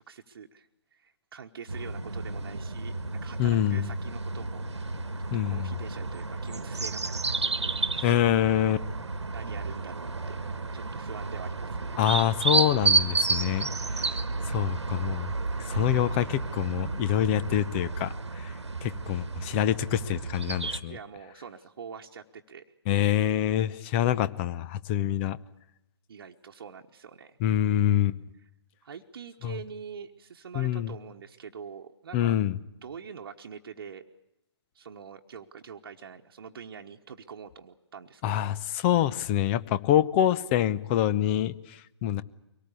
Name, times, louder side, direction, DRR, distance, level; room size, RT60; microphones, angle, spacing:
voice 1, 0.0-4.7 5.4-7.1 7.4-7.5 7.8-8.2 9.3-12.0 18.8-19.2 20.9-22.6 26.1-27.4 28.8-32.4 32.8-34.0 34.7-38.4, right 6 dB, 55° right, 3 dB, 1.2 m, -45 dB
sound 1, 1.7-20.8, right 3 dB, 75° right, 1.4 m, -31 dB
voice 2, 3.4-3.9 5.3-5.7 8.0-8.8 12.0-13.7 13.9-14.2 14.5-15.3 15.7-18.5 18.8-21.0 22.9-25.4 27.4-28.2 29.4-29.6 30.5-30.9 32.1-32.6 38.2-42.2, left 11 dB, 25° left, 16 dB, 0.8 m, -26 dB
24.0 x 18.5 x 8.3 m, 0.89 s
figure-of-eight pair, 130°, 15 cm